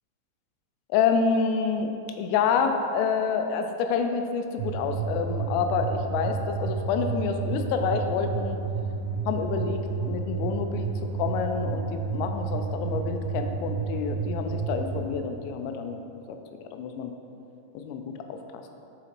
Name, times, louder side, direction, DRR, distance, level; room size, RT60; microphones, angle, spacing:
voice 1, 0.9-1.9 2.2-8.6 9.3-16.0 16.7-17.1 17.7-18.0 18.3-18.6, left 6 dB, 85° left, 6 dB, 3.1 m, -28 dB
sound 1, 4.6-15.0, right 5 dB, 85° right, 3.1 m, -31 dB
11.5 x 4.8 x 2.9 m, 2.8 s
omnidirectional pair, 5.7 m